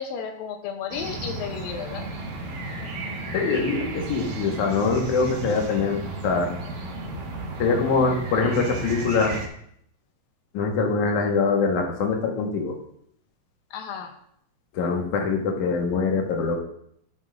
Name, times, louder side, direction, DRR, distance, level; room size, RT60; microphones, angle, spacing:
voice 1, 0.0-2.1 13.7-14.1, left 6 dB, 85° left, 4 dB, 2.5 m, -33 dB
sound 1, 0.9-9.5, right 2 dB, 60° right, 2.7 m, -34 dB
voice 2, 3.3-6.5 7.6-9.3 10.5-12.8 14.7-16.6, left 4 dB, 65° left, 2 dB, 2.6 m, -23 dB
12.5 x 8.7 x 2.6 m, 0.71 s
omnidirectional pair, 4.1 m